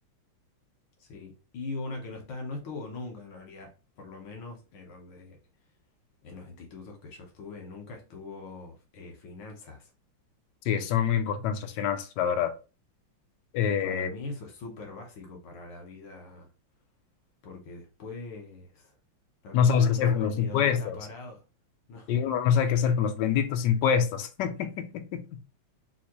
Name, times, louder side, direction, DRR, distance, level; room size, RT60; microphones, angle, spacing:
voice 1, 1.0-3.7 4.0-5.4 6.2-9.9 13.8-16.5 17.4-19.0 19.4-21.4 21.9-22.2, left 3 dB, 90° left, 2.1 m, -42 dB
voice 2, 10.7-12.5 13.5-14.1 19.5-21.0 22.1-25.2, left 8 dB, 70° left, 1.2 m, -25 dB
5.7 x 2.6 x 3.0 m
omnidirectional pair, 2.2 m